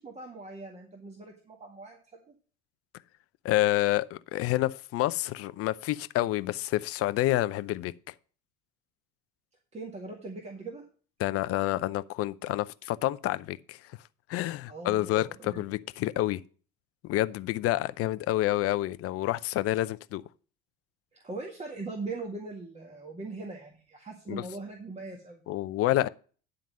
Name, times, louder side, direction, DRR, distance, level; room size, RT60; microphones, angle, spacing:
voice 1, 0.0-2.0 2.3-2.4 9.7-10.8 14.7-15.6 21.1-25.4, right 3 dB, 20° right, 1.9 m, -40 dB
voice 2, 3.4-7.9 11.2-13.8 14.3-16.4 17.0-20.2 24.3-24.4 25.5-26.1, left 15 dB, 50° left, 0.6 m, -28 dB
10.5 x 3.9 x 7.6 m
supercardioid pair, 95°, 29 cm